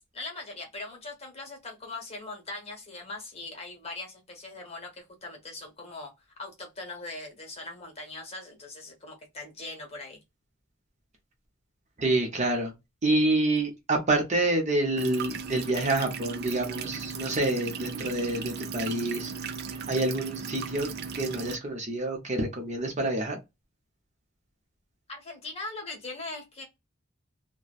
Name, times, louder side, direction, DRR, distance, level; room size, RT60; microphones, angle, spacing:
voice 1, 0.1-6.1 6.4-10.2 25.1-26.6, left 2 dB, 30° left, 1.1 m, -40 dB
voice 2, 12.0-12.7 13.0-19.3 19.9-23.4, right 2 dB, 35° right, 0.8 m, -27 dB
sound 1, 15.0-21.6, right 5 dB, 55° right, 0.4 m, -37 dB
2.8 x 2.2 x 2.4 m
head